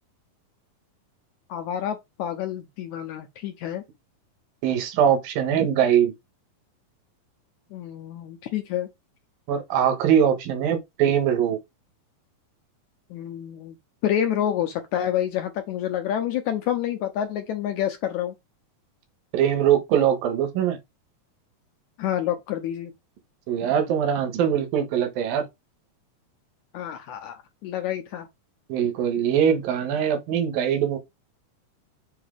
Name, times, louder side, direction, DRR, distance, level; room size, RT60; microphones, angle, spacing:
voice 1, 1.5-3.8 7.7-8.9 13.1-13.8 14.0-18.3 22.0-22.9 26.7-28.3, left 10 dB, 80° left, 1.7 m, -28 dB
voice 2, 4.6-6.1 9.5-11.6 19.3-20.8 23.5-25.5 28.7-31.0, right 9 dB, 75° right, 2.9 m, -22 dB
7.2 x 2.8 x 5.0 m
omnidirectional pair, 4.2 m